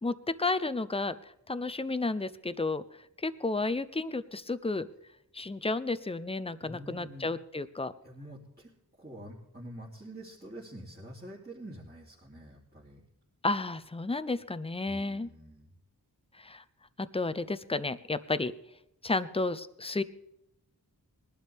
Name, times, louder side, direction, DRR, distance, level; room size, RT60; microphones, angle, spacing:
voice 1, 0.0-1.1 1.5-2.8 3.2-4.9 5.3-7.9 13.4-15.3 16.4-16.6 17.0-18.5 19.0-20.0, left 3 dB, 15° left, 14 dB, 0.6 m, -32 dB
voice 2, 6.6-7.3 8.0-8.7 9.0-13.0 14.9-15.7, right 1 dB, 25° right, -8 dB, 3.0 m, -47 dB
20.5 x 12.0 x 3.5 m, 0.80 s
wide cardioid pair, 55°, 39 cm